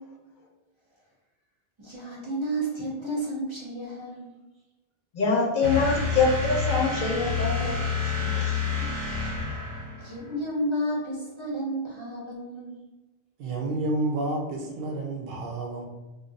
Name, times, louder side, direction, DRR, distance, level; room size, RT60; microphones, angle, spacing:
voice 1, 1.8-4.3 8.4-9.1 10.0-12.7, right 1 dB, 30° right, -4 dB, 0.7 m, -32 dB
voice 2, 5.1-8.7, left 4 dB, 60° left, -1 dB, 0.7 m, -25 dB
sound 1, 5.6-10.3, left 5 dB, 90° right, 1.0 m, -29 dB
voice 3, 13.4-15.8, right 2 dB, 70° right, 1 dB, 0.7 m, -29 dB
2.5 x 2.2 x 3.9 m, 1.1 s
omnidirectional pair, 1.0 m